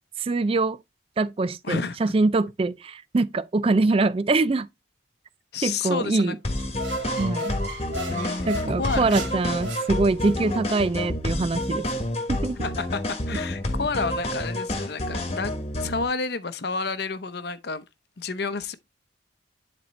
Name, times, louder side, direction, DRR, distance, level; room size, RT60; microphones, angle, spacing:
voice 1, 0.2-0.8 1.2-4.7 5.6-6.4 7.2-7.5 8.5-11.9 12.3-12.6 13.3-13.4, right 3 dB, 30° right, 0.3 m, -24 dB
voice 2, 1.6-2.1 5.5-6.4 8.1-9.1 12.6-15.5 15.8-17.8 18.2-18.8, left 4 dB, 55° left, 0.7 m, -30 dB
sound 1, 6.4-16.0, left 1 dB, 30° left, 1.4 m, -29 dB
sound 2, 6.5-10.6, right 1 dB, 75° right, 2.4 m, -36 dB
10.5 x 4.3 x 3.1 m
head